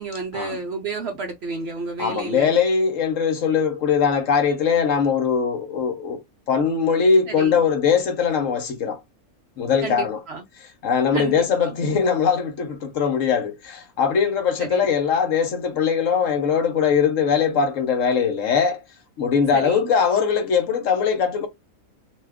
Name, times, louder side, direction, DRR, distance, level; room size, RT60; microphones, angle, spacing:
voice 1, 0.0-2.5 7.3-7.6 9.8-10.5 11.1-11.7 14.6-14.9 19.5-19.9, right 4 dB, 60° right, 0.7 m, -31 dB
voice 2, 2.0-6.2 6.5-9.0 9.6-10.2 10.8-18.8 19.2-21.5, left 6 dB, 65° left, 1.0 m, -21 dB
2.6 x 2.3 x 3.4 m
omnidirectional pair, 1.6 m